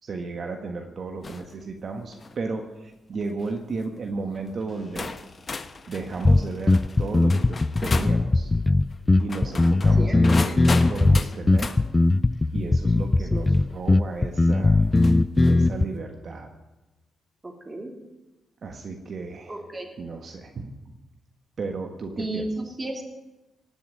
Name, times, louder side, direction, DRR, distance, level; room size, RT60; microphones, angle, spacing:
voice 1, 0.0-5.2 5.9-8.5 9.2-11.8 12.5-14.8 15.4-16.6 18.6-19.7 20.0-20.7 21.6-22.8, right 3 dB, 50° right, 4 dB, 1.4 m, -34 dB
sound 1, 1.2-1.5 2.0-2.4 3.2-3.5 4.3-4.4 5.0-8.2 9.2-11.8 13.5-13.6 14.9-15.6, left 4 dB, 40° left, 1.1 m, -34 dB
sound 2, 6.2-15.8, left 2 dB, 20° left, 0.4 m, -19 dB
voice 2, 10.0-10.4 13.3-13.6 17.4-17.9 19.5-19.9 22.2-22.5 22.8-23.0, right 2 dB, 20° right, 2 dB, 3.2 m, -34 dB
17.5 x 7.2 x 9.3 m, 1.1 s
cardioid pair, 80°, 0 cm